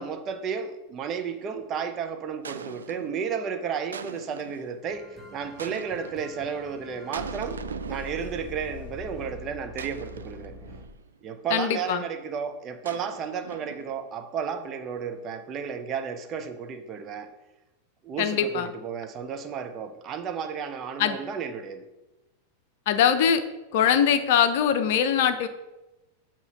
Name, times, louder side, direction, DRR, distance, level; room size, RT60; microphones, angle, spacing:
voice 1, 0.0-10.5 11.2-17.3 18.0-21.9, right 6 dB, 30° right, 7 dB, 0.6 m, -33 dB
sound 1, 1.2-1.5 2.4-3.2 3.9-4.7 5.6-6.3 7.1-8.8 9.8-11.0 12.8-14.1, right 6 dB, 70° right, 0.3 m, -40 dB
Futuristic High Tension, 4.8-10.9, left 3 dB, 10° left, 1.1 m, -43 dB
voice 2, 11.5-12.0 18.2-18.7 21.0-21.2 22.9-23.4 23.7-25.5, left 8 dB, 50° left, 9 dB, 0.6 m, -22 dB
8.0 x 3.0 x 5.6 m, 1.0 s
figure-of-eight pair, 90°, 0 cm